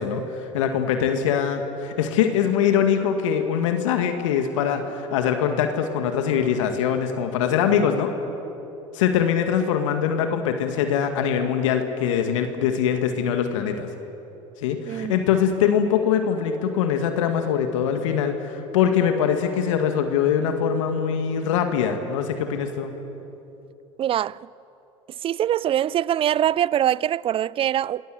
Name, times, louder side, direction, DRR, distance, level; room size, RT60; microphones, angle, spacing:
voice 1, 0.0-8.1 8.9-13.9 14.6-22.9, left 8 dB, 75° left, 2.0 m, -23 dB
voice 2, 14.9-15.3 24.0-24.5 25.2-28.0, right 11 dB, 35° right, 0.5 m, -23 dB
27.5 x 19.5 x 7.8 m
hypercardioid pair, 85°, 16 cm